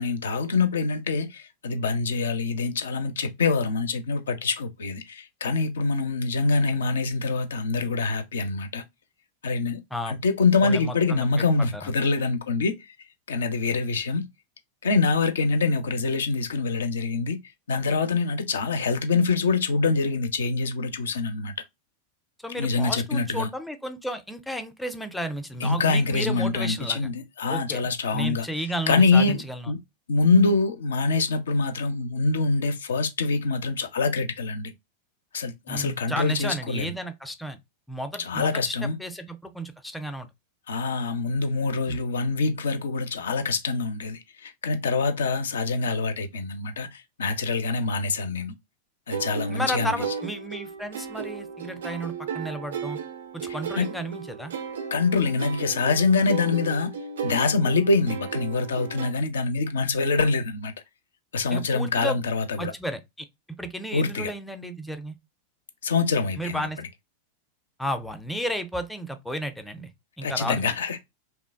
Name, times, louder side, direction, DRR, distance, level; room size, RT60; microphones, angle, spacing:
voice 1, 0.0-8.8 9.4-9.8 10.1-12.7 13.3-14.3 14.8-17.4 17.7-21.5 22.6-23.5 25.6-28.5 28.9-29.8 30.1-34.7 35.3-36.9 38.2-39.0 40.7-48.5 49.1-49.9 53.8-53.9 54.9-56.9 57.2-60.7 61.3-62.7 63.9-64.3 65.8-66.7 70.2-71.0, left 4 dB, 65° left, 0.4 m, -25 dB
voice 2, 10.6-11.3 11.7-11.9 22.4-27.1 27.5-27.8 28.1-29.7 35.7-37.6 37.9-40.3 41.9-42.0 49.5-53.0 53.3-54.5 61.5-62.2 62.6-63.3 63.6-65.1 66.4-66.8 67.8-69.9 70.2-70.7, equal, 5° left, 0.4 m, -33 dB
sound 1, 49.1-59.1, right 5 dB, 65° right, 0.4 m, -35 dB
2.9 x 2.1 x 2.2 m
figure-of-eight pair, 90°, 0 cm